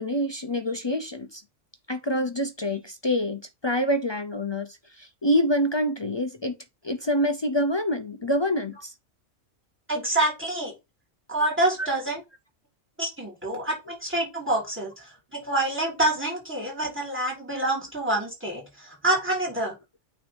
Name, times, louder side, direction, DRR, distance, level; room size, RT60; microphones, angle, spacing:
voice 1, 0.0-1.4 1.9-6.6 6.8-8.9 11.8-11.9 17.5-17.6, equal, 35° left, 0.4 m, -26 dB
voice 2, 9.9-10.7 11.3-12.2 13.0-19.7, right 1 dB, 10° right, 3.3 m, -27 dB
8.9 x 3.4 x 5.3 m
omnidirectional pair, 1.3 m